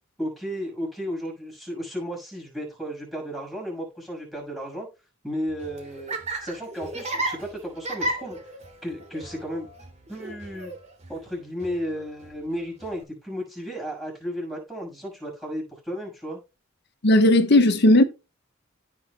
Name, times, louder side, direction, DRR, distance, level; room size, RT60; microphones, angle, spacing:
voice 1, 0.2-4.9 5.2-8.4 8.8-9.7 10.1-10.7 11.1-16.4, equal, ahead, 6.4 m, -34 dB
Laughter, 5.5-13.0, right 1 dB, 35° right, 2.9 m, -35 dB
voice 2, 17.0-18.0, left 1 dB, 55° left, 1.3 m, -16 dB
17.0 x 5.9 x 2.4 m
head